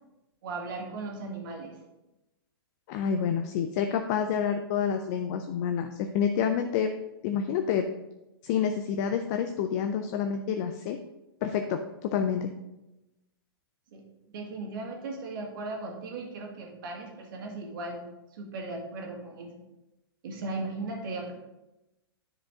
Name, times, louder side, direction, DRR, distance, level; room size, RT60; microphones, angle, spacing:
voice 1, 0.4-1.8 13.9-14.0 14.3-18.0 18.3-19.5 20.2-21.3, right 3 dB, 60° right, 0 dB, 2.0 m, -37 dB
voice 2, 2.9-6.9 7.2-7.9 8.4-11.0 11.4-12.5, left 7 dB, 45° left, 6 dB, 0.5 m, -28 dB
10.0 x 4.9 x 3.6 m, 0.97 s
hypercardioid pair, 125°, 13 cm